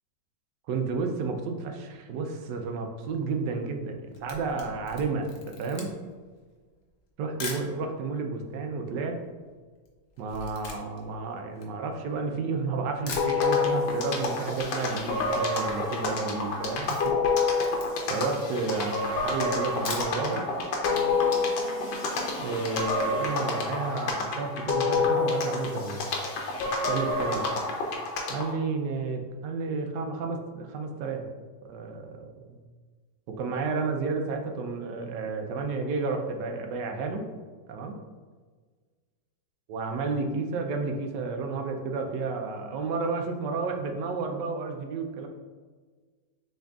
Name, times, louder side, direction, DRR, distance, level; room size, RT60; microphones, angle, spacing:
voice 1, 0.7-5.9 7.2-9.2 10.2-17.2 18.1-20.5 22.4-26.1 26.9-27.5 28.3-31.2 31.7-32.6 33.3-37.2 37.7-38.0 39.7-45.3, right 4 dB, 80° right, 4 dB, 1.2 m, -31 dB
Camera, 3.9-7.7 8.4-8.5 8.7-12.4 12.8-12.9 13.1-13.9 14.2-14.3 14.6-14.7 14.8-15.3 15.6-15.8 16.2-18.2 18.7-18.8 19.6-20.4 20.8-20.9 21.2-21.3, left 3 dB, 50° left, 0.8 m, -41 dB
sound 1, 13.2-28.5, left 3 dB, 80° left, 1.4 m, -28 dB
6.5 x 3.5 x 2.3 m, 1.5 s
omnidirectional pair, 1.9 m